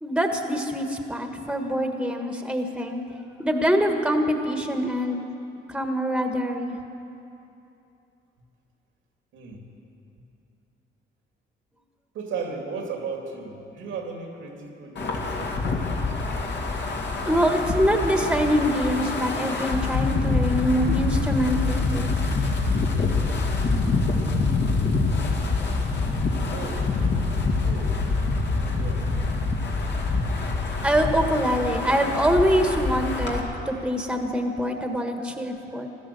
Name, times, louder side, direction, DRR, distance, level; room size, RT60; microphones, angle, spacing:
voice 1, 0.0-3.0 3.4-5.2 5.7-6.8 17.2-22.1 30.8-35.9, equal, 5° right, 4 dB, 1.5 m, -24 dB
voice 2, 9.3-9.7 12.1-15.9 24.5-24.8 26.5-27.0 27.5-28.1 28.5-29.1, right 5 dB, 85° right, 1 dB, 2.7 m, -36 dB
Wind, 15.0-33.4, left 3 dB, 60° left, 2.4 m, -25 dB
16.5 x 12.5 x 7.0 m, 2.8 s
cardioid pair, 90°, 20 cm